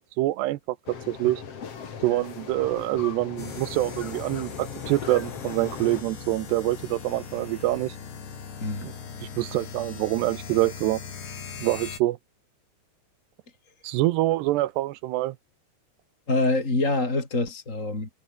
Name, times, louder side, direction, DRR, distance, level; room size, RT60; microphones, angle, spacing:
voice 1, 0.0-1.4 2.0-8.0 9.4-11.0 11.6-12.2 13.8-15.4, right 17 dB, 80° right, 2.8 m, -25 dB
sound 1, 0.9-6.0, left 6 dB, 40° left, 3.1 m, -39 dB
sound 2, 3.4-12.0, left 6 dB, 70° left, 7.2 m, -40 dB
voice 2, 8.6-8.9 16.3-18.1, left 2 dB, 20° left, 4.0 m, -25 dB
omnidirectional pair, 5.1 m